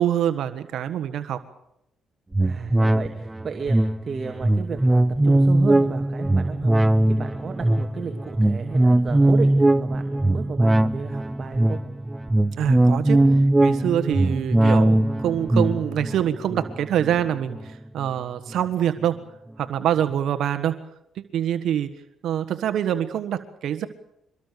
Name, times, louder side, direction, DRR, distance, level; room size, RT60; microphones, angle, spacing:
voice 1, 0.0-1.4 12.6-19.2 19.6-20.8 21.1-21.9 22.2-23.9, right 10 dB, 75° right, 10 dB, 1.6 m, -25 dB
sound 1, 2.3-18.1 18.5-18.6, right 1 dB, 15° right, 0.8 m, -20 dB
voice 2, 2.4-11.8, right 5 dB, 40° right, 4 dB, 2.6 m, -33 dB
25.0 x 21.5 x 6.9 m, 0.80 s
cardioid pair, 90°, 0 cm